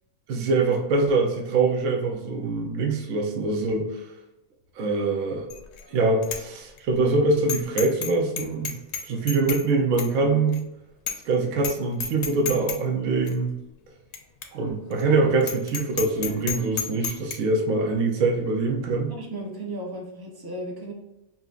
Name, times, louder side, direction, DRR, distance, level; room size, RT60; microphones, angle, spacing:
voice 1, 0.3-3.9 4.8-5.5 5.9-8.7 9.0-10.6 11.2-13.5 14.5-19.1, right 3 dB, 70° right, 1 dB, 1.1 m, -24 dB
Bicycle bell, 5.5-5.8 6.2-6.4 6.8-6.9 7.5-8.1 8.4-9.6 10.0-10.1 10.5-10.6 11.1-11.3 11.6-11.7 12.0-12.8 13.3-13.4 14.1-14.2 14.4-14.5 14.9-15.0 15.4-17.4, left 7 dB, 65° left, 0.7 m, -30 dB
voice 2, 19.1-20.9, right 1 dB, 35° right, -1 dB, 0.3 m, -35 dB
5.7 x 2.5 x 2.4 m, 0.95 s
omnidirectional pair, 1.6 m